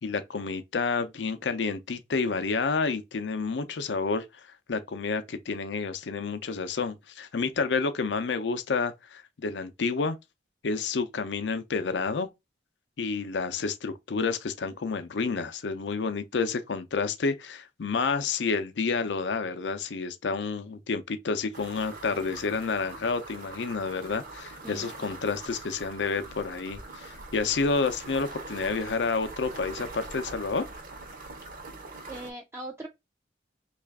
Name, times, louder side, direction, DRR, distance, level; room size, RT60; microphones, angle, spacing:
voice 1, 0.0-4.2 4.7-10.2 10.6-12.3 13.0-30.7, left 4 dB, 85° left, 0.5 m, -29 dB
sound 1, 21.5-32.3, right 3 dB, 50° right, 0.7 m, -43 dB
voice 2, 32.1-32.9, right 1 dB, 15° right, 0.3 m, -39 dB
3.2 x 2.4 x 3.5 m
head